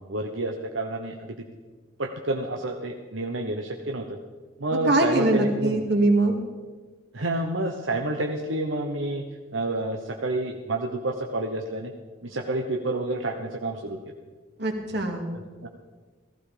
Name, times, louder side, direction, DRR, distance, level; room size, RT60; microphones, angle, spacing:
voice 1, 0.0-1.4 2.0-4.2 4.6-5.8 7.1-9.2 9.5-11.9 12.2-14.0 15.3-15.7, right 2 dB, 90° right, 2 dB, 1.1 m, -29 dB
voice 2, 4.9-6.3 14.6-15.3, right 2 dB, 60° right, 3 dB, 2.3 m, -22 dB
15.5 x 14.5 x 5.1 m, 1.4 s
head